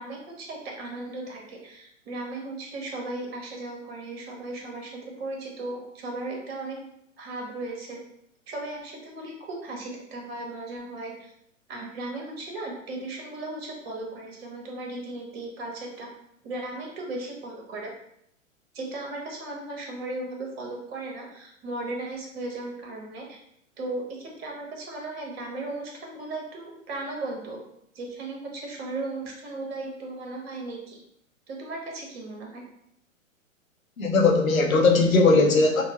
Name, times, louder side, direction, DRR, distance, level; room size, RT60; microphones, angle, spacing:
voice 1, 0.0-6.8 7.2-8.0 8.5-11.3 11.7-16.1 16.4-17.9 18.7-23.4 23.8-27.6 27.9-31.0 31.5-32.6, right 2 dB, 50° right, -1 dB, 1.1 m, -36 dB
voice 2, 34.0-35.8, left 3 dB, 80° left, 2 dB, 0.8 m, -19 dB
3.6 x 2.1 x 2.9 m, 0.73 s
figure-of-eight pair, 115°, 40 cm